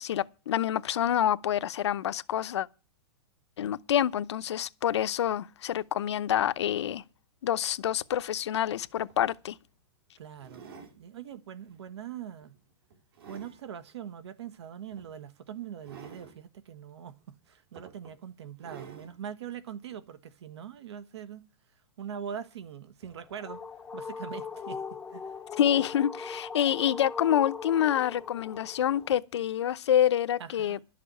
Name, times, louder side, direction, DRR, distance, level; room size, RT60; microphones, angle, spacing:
voice 1, 0.0-2.7 3.6-7.0 7.4-9.5 25.5-30.8, left 10 dB, 80° left, 0.7 m, -27 dB
sound 1, 9.1-9.3 10.4-11.0 11.6-11.9 12.4-13.6 14.9-15.1 15.8-16.4 17.2-17.3 17.7-18.2 18.6-19.2 19.9-20.0, right 6 dB, 60° right, 2.6 m, -49 dB
voice 2, 10.2-10.6 11.0-12.6 13.3-21.5 22.0-23.6 23.9-25.3 30.4-30.8, right 8 dB, 75° right, 1.3 m, -42 dB
sound 2, 23.0-29.1, left 5 dB, 5° left, 0.6 m, -40 dB
12.0 x 6.8 x 8.2 m
supercardioid pair, 170°, 14 cm